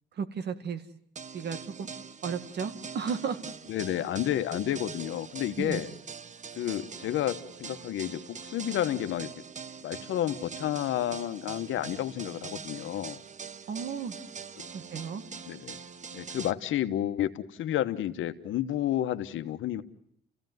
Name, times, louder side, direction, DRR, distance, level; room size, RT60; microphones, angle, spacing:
voice 1, 0.2-0.8 1.3-1.9 2.2-3.4 5.6-5.8 13.7-14.1 14.7-15.2, right 6 dB, 60° right, 10 dB, 2.0 m, -34 dB
sound 1, 1.2-16.5, right 6 dB, 35° right, 0.9 m, -43 dB
voice 2, 3.7-5.9 6.6-9.3 9.8-13.2 15.5-15.8 16.1-19.8, left 12 dB, 80° left, 10 dB, 1.3 m, -31 dB
29.5 x 16.0 x 9.4 m, 0.72 s
cardioid pair, 90°, 20 cm